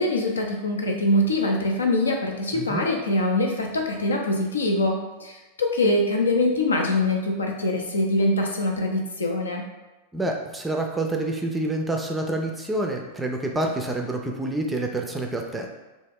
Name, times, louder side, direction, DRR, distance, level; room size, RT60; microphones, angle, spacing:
voice 1, 0.0-9.6, left 1 dB, 70° left, 1 dB, 0.5 m, -23 dB
voice 2, 2.5-2.9 10.1-15.7, right 2 dB, 10° right, 2 dB, 0.4 m, -27 dB
2.9 x 2.1 x 3.5 m, 1.1 s
figure-of-eight pair, 90°, 0 cm